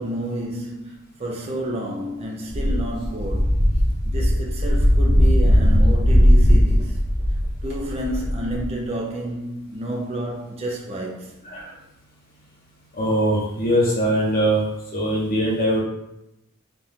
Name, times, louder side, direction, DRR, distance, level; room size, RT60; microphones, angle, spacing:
voice 1, 0.0-3.6 4.0-7.0 7.6-11.4, right 1 dB, 30° right, 0.5 m, -30 dB
sound 1, 2.5-8.7, equal, 55° right, 1.2 m, -18 dB
voice 2, 12.9-14.6 14.9-15.8, right 1 dB, 45° left, 1.2 m, -21 dB
4.3 x 2.4 x 3.6 m
head